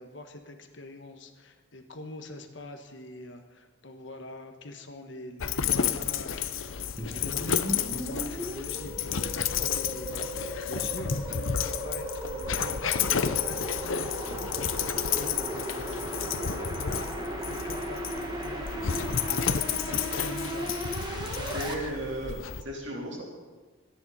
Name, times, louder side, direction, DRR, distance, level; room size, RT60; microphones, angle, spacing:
voice 1, 0.0-17.1 17.5-21.8, left 1 dB, 65° left, 5 dB, 1.4 m, -44 dB
Dog, 5.4-22.6, left 8 dB, 80° left, 0.7 m, -31 dB
sound 1, 7.0-21.7, right 1 dB, 20° right, 1.7 m, -36 dB
voice 2, 21.5-23.2, right 1 dB, 60° right, -2 dB, 3.8 m, -35 dB
26.0 x 9.9 x 4.2 m, 1.4 s
head